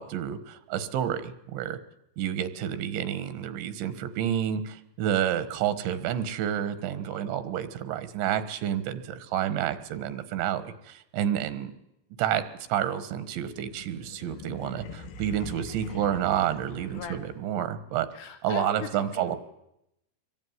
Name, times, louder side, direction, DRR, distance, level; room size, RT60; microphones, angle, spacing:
voice 1, 0.0-1.8 2.2-11.7 12.2-12.4 12.7-18.1 18.4-19.4, right 10 dB, 90° right, 12 dB, 3.8 m, -29 dB
sound 1, 13.4-17.7, left 2 dB, 65° left, 3.5 m, -43 dB
voice 2, 18.1-19.4, left 7 dB, 80° left, 7 dB, 4.4 m, -39 dB
25.5 x 22.5 x 9.6 m, 0.84 s
omnidirectional pair, 5.1 m